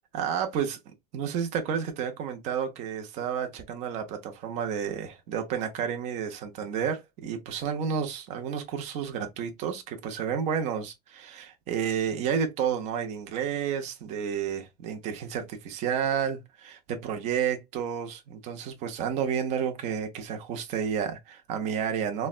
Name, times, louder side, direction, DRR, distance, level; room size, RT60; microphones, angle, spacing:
voice 1, 0.1-22.3, right 8 dB, 35° right, 0.6 m, -31 dB
3.9 x 2.2 x 2.3 m
supercardioid pair, 160°, 20 cm